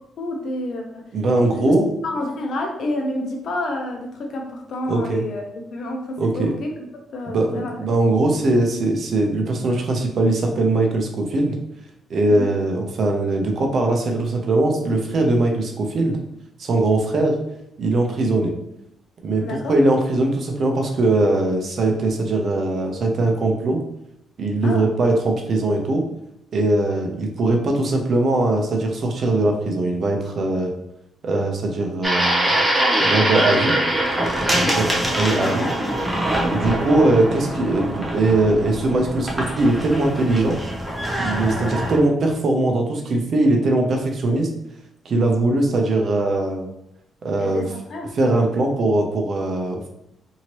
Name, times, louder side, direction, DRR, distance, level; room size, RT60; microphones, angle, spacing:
voice 1, 0.2-1.1 1.4-1.8 2.0-6.7 7.1-7.8 12.3-12.5 19.4-19.7 24.6-24.9 34.6-35.9 36.3-36.6 47.4-48.1, left 1 dB, 65° left, 1 dB, 0.7 m, -29 dB
voice 2, 1.1-1.8 4.9-5.2 6.2-6.5 7.3-11.6 12.1-16.2 16.6-17.4 17.8-18.5 19.2-19.4 19.7-23.8 24.4-26.0 26.5-30.7 31.2-32.5 33.0-33.7 34.5-34.8 35.2-35.7 36.4-40.6 41.2-44.5 45.0-46.7 47.2-47.6 48.2-49.9, right 2 dB, 55° right, 2 dB, 0.6 m, -20 dB
sound 1, 32.0-42.0, right 1 dB, 10° right, 0.7 m, -23 dB
2.8 x 2.8 x 3.0 m, 0.81 s
cardioid pair, 85°, 0 cm